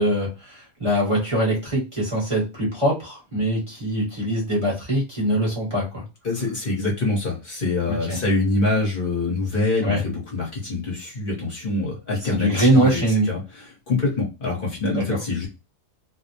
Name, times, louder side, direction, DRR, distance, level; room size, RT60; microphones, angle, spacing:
voice 1, 0.0-6.0 7.8-8.2 9.8-10.0 12.3-13.3 14.9-15.0, right 1 dB, 25° right, -5 dB, 0.9 m, -22 dB
voice 2, 6.2-13.0 13.3-13.4 13.9-15.5, left 2 dB, 45° left, -2 dB, 1.0 m, -25 dB
2.6 x 2.0 x 2.7 m, 0.28 s
omnidirectional pair, 1.3 m